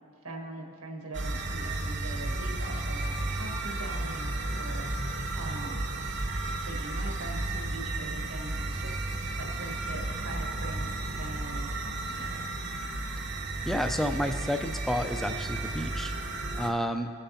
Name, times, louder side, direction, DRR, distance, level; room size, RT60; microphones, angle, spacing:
voice 1, 0.2-5.8 6.4-9.0 9.4-12.5, right 2 dB, 85° right, 0 dB, 1.5 m, -42 dB
sound 1, 1.1-16.7, right 2 dB, 55° right, 0.8 m, -33 dB
voice 2, 13.7-17.1, equal, ahead, 7 dB, 0.3 m, -31 dB
16.0 x 6.8 x 2.8 m, 2.4 s
head